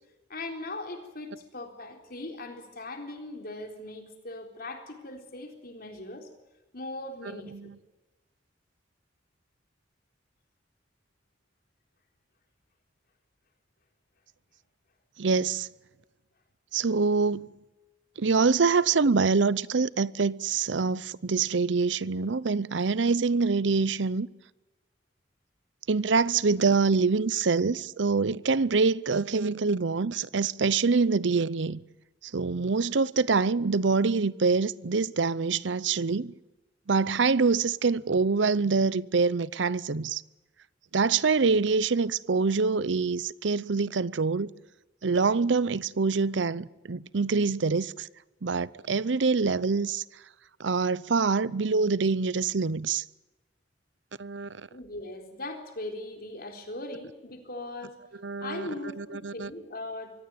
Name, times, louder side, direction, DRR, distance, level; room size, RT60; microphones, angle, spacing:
voice 1, 0.3-6.3 6.7-7.7 54.7-58.0 58.4-60.1, left 2 dB, 55° left, 3.9 m, -39 dB
voice 2, 15.2-15.7 16.7-17.5 18.2-24.3 25.9-31.8 32.2-36.3 36.9-40.2 40.9-44.5 45.0-48.1 48.4-50.0 50.6-53.0 54.2-54.7 58.2-58.7 59.0-59.5, right 4 dB, 75° right, 0.7 m, -25 dB
24.0 x 16.5 x 9.2 m
head